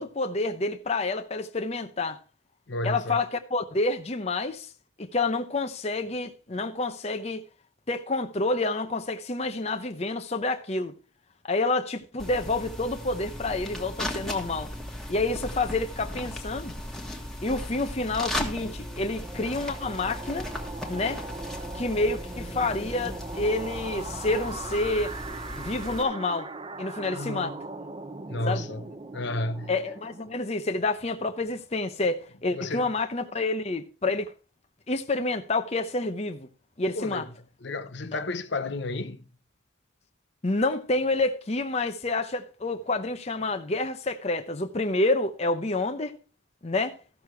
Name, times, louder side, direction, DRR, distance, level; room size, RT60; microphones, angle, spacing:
voice 1, 0.0-2.2 2.8-4.7 5.0-7.4 7.9-10.9 11.4-14.7 15.1-16.7 17.4-20.5 20.9-21.2 21.7-25.2 25.6-26.5 26.8-27.5 28.5-28.6 29.7-34.3 34.9-36.5 36.8-37.2 38.1-38.2 40.4-46.1 46.6-47.0, left 2 dB, 30° left, 0.7 m, -28 dB
voice 2, 2.7-3.2 27.1-27.6 28.3-28.9 29.1-29.8 32.5-32.9 36.9-37.3 37.6-39.2, left 2 dB, 60° left, 0.9 m, -32 dB
sound 1, 12.2-26.0, left 1 dB, ahead, 1.5 m, -37 dB
sound 2, 18.2-30.6, right 3 dB, 25° right, 0.7 m, -40 dB
14.0 x 6.6 x 4.5 m
head